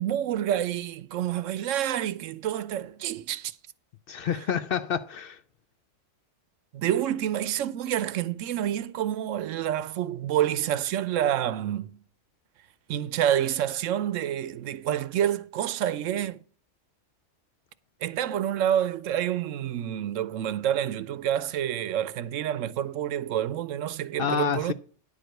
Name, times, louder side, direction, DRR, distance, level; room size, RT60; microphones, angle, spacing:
voice 1, 0.0-3.5 6.7-12.0 12.9-16.4 18.0-24.7, right 11 dB, 80° right, 1.0 m, -28 dB
voice 2, 4.1-5.4 24.2-24.7, left 7 dB, 60° left, 0.7 m, -28 dB
10.5 x 5.0 x 7.6 m
omnidirectional pair, 1.3 m